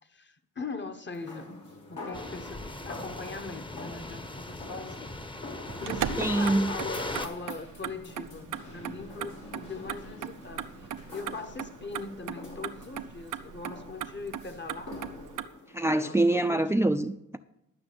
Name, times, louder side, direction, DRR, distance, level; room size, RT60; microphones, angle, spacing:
voice 1, 0.0-5.1 5.8-10.7 11.1-15.2 16.0-16.9, left 4 dB, 35° left, 1.2 m, -41 dB
sound 1, 1.1-16.6, left 2 dB, 75° left, 2.9 m, -46 dB
sound 2, 2.1-7.3, left 2 dB, 15° left, 0.9 m, -38 dB
Motor vehicle (road), 5.7-15.5, right 9 dB, 85° right, 0.7 m, -39 dB
voice 2, 6.2-6.7 15.7-17.4, right 1 dB, 10° right, 0.4 m, -25 dB
12.0 x 5.9 x 7.8 m
cardioid pair, 65°, 30 cm